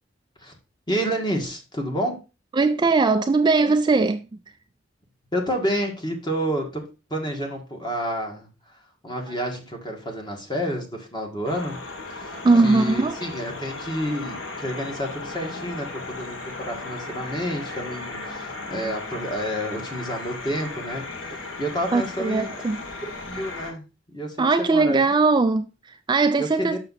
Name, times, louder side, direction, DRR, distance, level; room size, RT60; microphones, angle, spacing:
voice 1, 0.9-2.2 5.3-6.8 7.1-8.5 9.0-11.8 12.1-12.4 12.6-21.3 21.6-22.5 23.0-25.0 26.4-26.8, equal, 25° left, 1.7 m, -29 dB
voice 2, 2.5-4.3 9.3-9.4 12.3-13.2 18.7-18.9 21.9-22.8 24.4-26.8, right 3 dB, 25° right, 0.3 m, -20 dB
sound 1, 11.4-23.7, left 3 dB, 75° left, 1.6 m, -36 dB
6.6 x 6.1 x 4.1 m
head